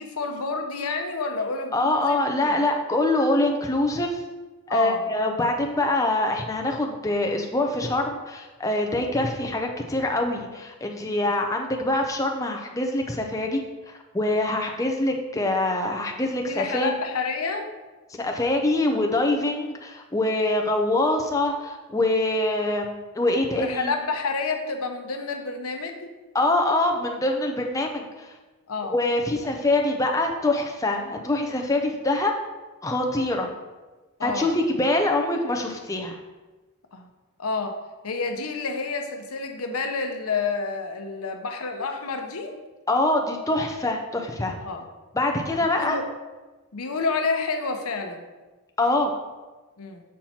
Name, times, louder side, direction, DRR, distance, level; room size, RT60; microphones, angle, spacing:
voice 1, 0.0-2.5 4.7-5.0 16.5-17.7 23.6-26.1 28.7-28.9 34.2-34.5 36.9-37.1 37.4-37.7 38.0-42.5 44.6-44.9 45.8-46.0 46.7-48.2 49.8-50.0, left 4 dB, 85° left, 4 dB, 0.9 m, -29 dB
voice 2, 1.7-4.2 4.7-16.9 18.2-23.9 26.3-28.3 28.9-32.3 32.8-33.5 34.2-36.1 42.9-44.5 45.1-46.0 48.8-49.1, left 2 dB, 15° left, 2 dB, 0.6 m, -24 dB
7.4 x 4.5 x 4.3 m, 1.2 s
head